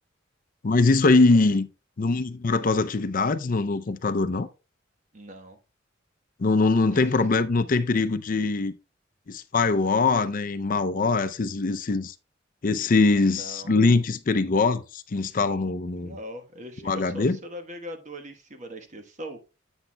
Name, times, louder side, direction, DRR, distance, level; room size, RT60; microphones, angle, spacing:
voice 1, 0.6-1.7 2.0-4.5 6.4-8.7 9.3-12.1 12.6-16.1 16.9-17.4, left 3 dB, 45° left, 0.5 m, -22 dB
voice 2, 5.1-5.6 6.9-7.0 13.2-13.8 16.0-19.4, equal, 40° right, 1.2 m, -40 dB
10.0 x 8.1 x 2.2 m
head